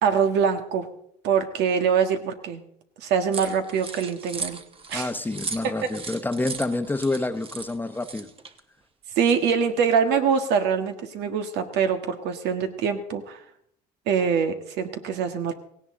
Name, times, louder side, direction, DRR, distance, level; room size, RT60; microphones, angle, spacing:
voice 1, 0.0-0.9 1.2-2.6 3.0-4.6 4.9-5.1 5.6-5.7 9.1-13.4 14.1-15.5, right 6 dB, 85° right, 7 dB, 1.6 m, -24 dB
sound 1, 3.3-8.6, right 4 dB, 35° right, 1.2 m, -37 dB
voice 2, 4.9-8.3, left 2 dB, 10° left, 9 dB, 0.9 m, -28 dB
17.5 x 16.5 x 3.8 m, 0.69 s
cardioid pair, 110°, 17 cm